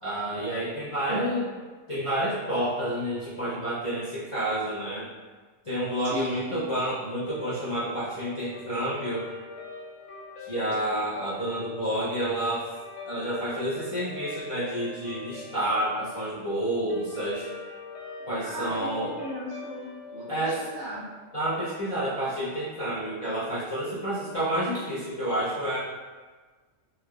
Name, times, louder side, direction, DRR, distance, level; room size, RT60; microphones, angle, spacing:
voice 1, 0.0-1.4 1.9-5.1 5.6-9.3 10.4-12.7 13.0-17.5 18.3-19.1 20.3-20.6 21.3-25.8, right 1 dB, 45° left, -11 dB, 0.4 m, -29 dB
voice 2, 1.1-1.5 6.0-6.6 18.4-21.1, equal, 55° right, -11 dB, 0.7 m, -36 dB
Guitar, 7.3-21.8, left 4 dB, 80° left, 1.0 m, -43 dB
3.1 x 2.1 x 2.2 m, 1.4 s
omnidirectional pair, 1.3 m